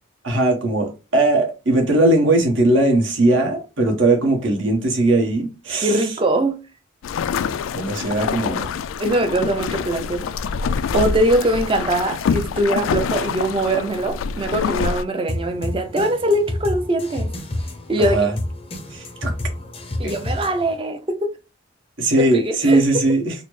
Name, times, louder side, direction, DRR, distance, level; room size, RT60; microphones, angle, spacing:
voice 1, 0.2-6.0 7.7-8.7 18.0-18.3 18.9-19.3 20.0-20.1 22.0-23.3, right 2 dB, 75° right, 1.1 m, -19 dB
voice 2, 5.8-6.6 9.0-10.3 10.9-17.3 17.9-18.3 20.0-21.3 22.2-23.1, right 1 dB, 25° right, 0.4 m, -22 dB
sound 1, 7.0-15.0, left 6 dB, 85° left, 0.3 m, -25 dB
sound 2, 15.3-20.8, left 1 dB, 30° left, 0.5 m, -29 dB
3.9 x 2.0 x 3.1 m
head